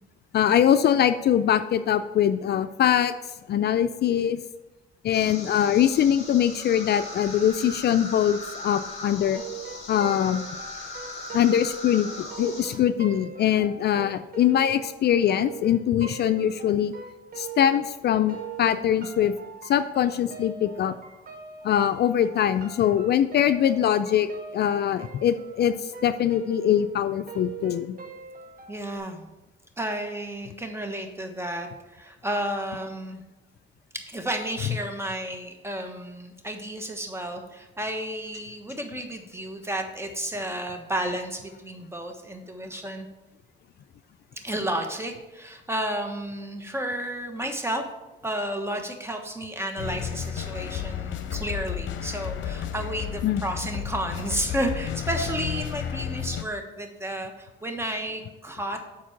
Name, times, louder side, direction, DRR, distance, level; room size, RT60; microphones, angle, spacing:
voice 1, 0.3-3.1 3.5-4.4 5.0-9.4 9.9-10.5 11.3-16.9 17.4-19.3 19.6-21.0 21.6-24.3 24.5-25.7 26.0-28.0 53.2-53.4, left 10 dB, 55° left, 11 dB, 0.4 m, -22 dB
sound 1, 5.1-12.7, left 2 dB, 30° left, 2.4 m, -39 dB
sound 2, 9.3-18.0 18.3-29.0, right 7 dB, 45° right, 1.4 m, -41 dB
voice 2, 28.7-29.3 29.8-33.2 33.9-43.1 44.4-47.8 48.2-58.8, right 1 dB, 10° right, 4 dB, 1.2 m, -32 dB
sound 3, 49.8-56.4, left 9 dB, 75° left, 0.7 m, -32 dB
7.4 x 4.5 x 5.8 m, 1.0 s
cardioid pair, 90°, 20 cm